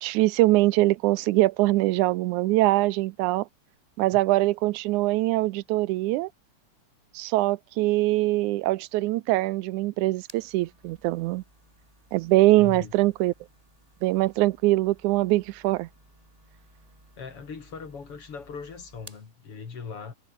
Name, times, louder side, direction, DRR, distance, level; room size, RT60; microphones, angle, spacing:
voice 1, 0.0-3.5 4.0-6.3 7.2-11.4 12.1-13.3 14.0-15.9, right 18 dB, 85° right, 2.0 m, -23 dB
sound 1, 9.9-19.3, right 1 dB, 10° right, 4.4 m, -56 dB
voice 2, 12.6-12.9 17.2-20.1, left 5 dB, 50° left, 3.7 m, -39 dB
omnidirectional pair, 3.5 m